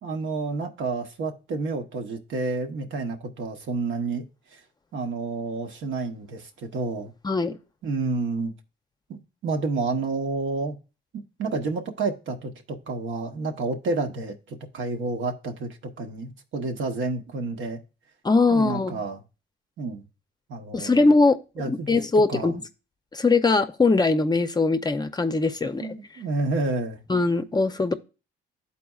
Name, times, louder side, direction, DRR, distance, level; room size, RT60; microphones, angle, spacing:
voice 1, 0.0-4.6 4.9-7.1 7.8-8.5 9.1-10.8 11.1-17.8 18.5-19.2 19.8-20.1 20.5-21.0 21.6-22.0 22.3-22.5 25.8-27.0, right 3 dB, 70° right, 1.0 m, -30 dB
voice 2, 7.2-7.6 18.2-19.0 20.7-21.4 21.6-22.6 23.1-25.9 27.1-27.9, left 3 dB, 20° left, 0.5 m, -21 dB
12.0 x 4.2 x 2.3 m
cardioid pair, 90°, 20 cm